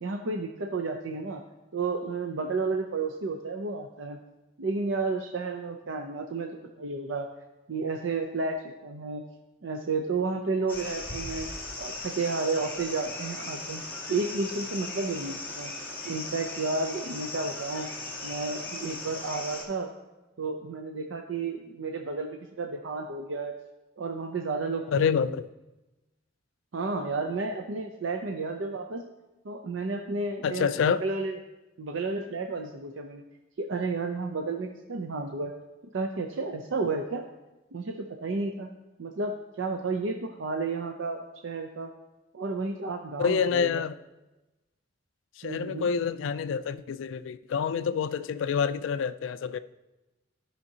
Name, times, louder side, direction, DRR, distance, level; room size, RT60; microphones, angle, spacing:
voice 1, 0.0-1.4 1.7-4.2 4.6-6.5 6.8-7.3 7.7-9.2 9.6-11.5 11.8-13.8 14.1-15.7 16.0-17.9 18.2-19.9 20.4-23.6 24.0-25.3 26.7-29.0 29.4-31.4 31.8-33.2 33.6-35.5 35.9-37.2 37.7-38.7 39.0-41.9 42.3-43.8 45.4-45.9, right 3 dB, 85° right, 0.5 m, -32 dB
sound 1, 10.7-19.6, left 2 dB, 10° left, 2.1 m, -38 dB
voice 2, 24.9-25.5 30.4-31.0 43.2-44.0 45.4-49.6, left 6 dB, 80° left, 0.3 m, -27 dB
13.0 x 5.7 x 2.8 m
head